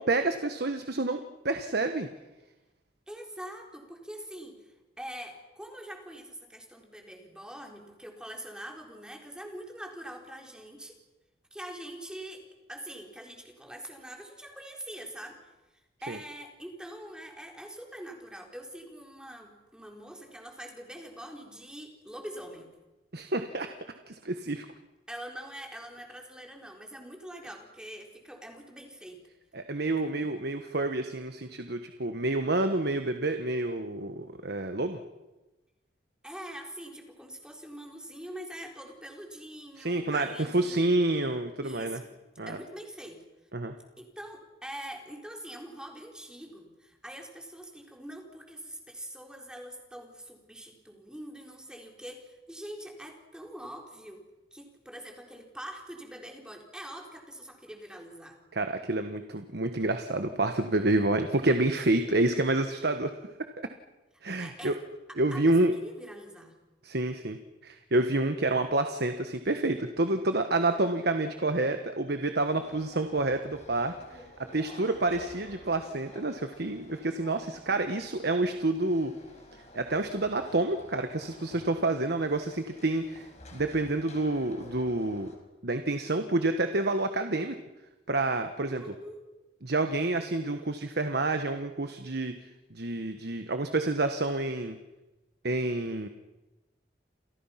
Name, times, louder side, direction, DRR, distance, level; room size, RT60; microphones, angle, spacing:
voice 1, 0.0-2.1 16.1-16.2 23.1-23.7 24.1-24.6 29.5-35.0 39.8-40.3 40.5-42.0 42.4-42.6 43.5-43.7 58.5-63.1 63.6-63.7 64.2-64.8 65.2-65.7 66.8-67.4 67.6-74.2 74.5-79.1 79.7-85.3 85.6-87.6 88.1-88.8 89.6-92.3 92.7-94.8 95.4-96.1, right 2 dB, 60° right, 7 dB, 1.4 m, -28 dB
voice 2, 3.1-11.0 11.5-15.5 16.0-22.7 25.1-29.2 36.2-40.8 41.6-42.1 42.5-43.2 44.0-58.4 64.4-64.8 65.3-66.6 88.7-89.2, right 1 dB, 5° right, 2 dB, 4.2 m, -44 dB
sound 1, 72.4-85.4, left 1 dB, 40° left, 5.1 m, -51 dB
29.5 x 28.5 x 5.9 m, 1.1 s
head